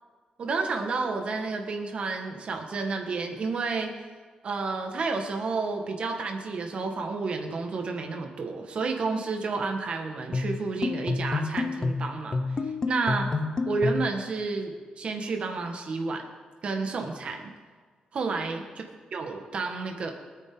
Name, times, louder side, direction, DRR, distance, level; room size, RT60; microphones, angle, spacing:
voice 1, 0.4-3.9 4.4-12.4 12.9-13.3 13.7-16.3 16.6-17.5 18.1-18.8 19.1-20.1, right 4 dB, 50° right, 3 dB, 1.8 m, -30 dB
sound 1, 10.3-14.2, left 3 dB, 30° left, 0.8 m, -29 dB
23.5 x 9.3 x 4.0 m, 1.5 s
wide cardioid pair, 155°, 2 cm